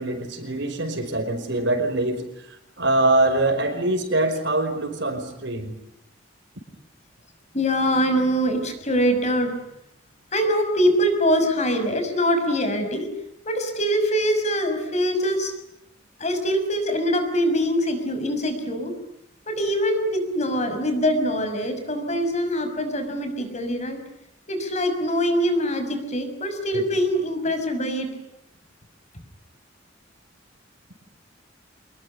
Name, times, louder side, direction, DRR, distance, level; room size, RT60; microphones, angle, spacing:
voice 1, 0.0-2.2 2.8-5.7 26.7-26.8, right 2 dB, 65° right, 8 dB, 5.1 m, -23 dB
voice 2, 7.5-9.5 10.3-13.1 13.4-15.5 16.2-18.9 19.5-24.0 24.5-28.1, equal, 35° left, 7 dB, 6.0 m, -23 dB
27.0 x 21.0 x 9.9 m, 0.80 s
head